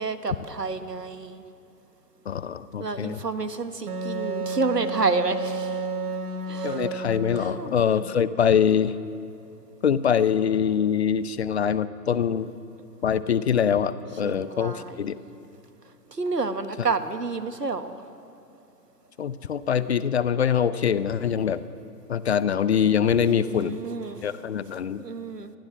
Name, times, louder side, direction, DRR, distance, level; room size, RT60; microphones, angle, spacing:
voice 1, 0.0-1.4 2.8-5.8 6.5-6.8 7.4-7.7 14.2-14.9 16.2-18.0 23.3-24.2 25.0-25.5, right 4 dB, 85° right, 10 dB, 1.6 m, -29 dB
voice 2, 2.3-3.2 6.6-8.9 9.8-12.5 13.0-15.2 16.8-16.9 19.2-21.6 22.1-23.8 24.2-25.0, left 8 dB, 45° left, 15 dB, 0.8 m, -24 dB
Wind instrument woodwind instrument, 3.9-8.0, right 3 dB, 65° right, 2.2 m, -31 dB
26.0 x 19.5 x 6.1 m, 2.8 s
figure-of-eight pair, 130°, 47 cm